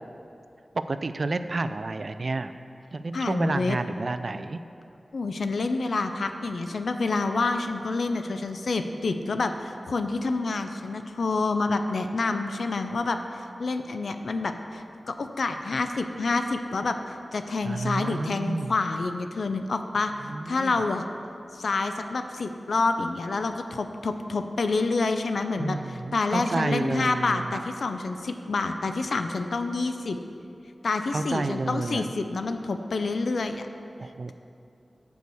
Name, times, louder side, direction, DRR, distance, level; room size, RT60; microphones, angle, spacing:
voice 1, 0.9-2.5 2.9-4.6 17.6-18.7 20.2-20.8 25.6-27.6 31.1-32.1 34.0-34.3, right 3 dB, 55° right, 11 dB, 0.3 m, -30 dB
voice 2, 3.1-3.8 5.1-21.1 21.5-30.2 30.8-33.6, left 3 dB, 85° left, 7 dB, 0.4 m, -28 dB
7.0 x 4.7 x 6.8 m, 2.6 s
wide cardioid pair, 75°, 0 cm